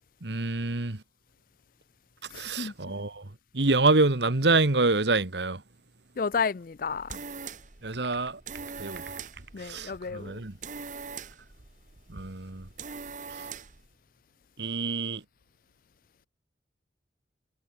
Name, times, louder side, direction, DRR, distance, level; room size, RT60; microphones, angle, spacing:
voice 1, 0.2-1.0 2.3-5.6 7.8-8.4 8.8-9.0 9.6-10.6 12.1-12.7 13.4-13.5 14.6-15.2, right 3 dB, 70° right, 1.6 m, -26 dB
voice 2, 2.3-2.7 6.2-7.2 9.5-10.4, left 5 dB, 50° left, 0.5 m, -32 dB
sound 1, 6.7-13.9, right 5 dB, 45° right, 1.2 m, -42 dB
head